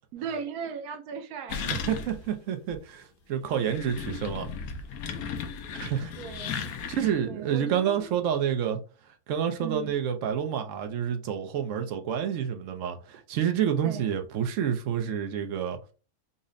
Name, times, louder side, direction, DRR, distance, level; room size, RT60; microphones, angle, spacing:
voice 1, 0.1-1.8 6.2-6.7 7.2-8.1 9.6-9.9 13.8-14.1, right 7 dB, 85° right, 1.2 m, -37 dB
sound 1, 1.5-2.3 2.7-2.8 3.4-7.2, left 6 dB, 75° left, 1.0 m, -36 dB
voice 2, 1.7-4.5 5.7-6.1 6.7-8.8 9.3-15.8, right 9 dB, 65° right, 0.9 m, -29 dB
4.1 x 2.1 x 3.7 m
omnidirectional pair, 1.6 m